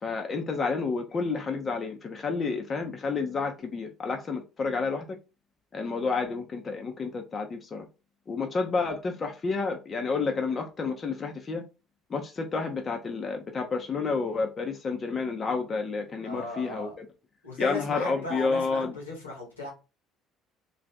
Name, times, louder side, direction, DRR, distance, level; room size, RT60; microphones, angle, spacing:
voice 1, 0.0-5.0 5.7-7.9 8.3-11.6 12.1-17.1 17.6-19.0, left 4 dB, 35° left, 0.6 m, -30 dB
voice 2, 16.2-17.0 17.4-19.7, left 2 dB, 90° left, 1.1 m, -36 dB
2.7 x 2.4 x 3.3 m
figure-of-eight pair, 55°, 0 cm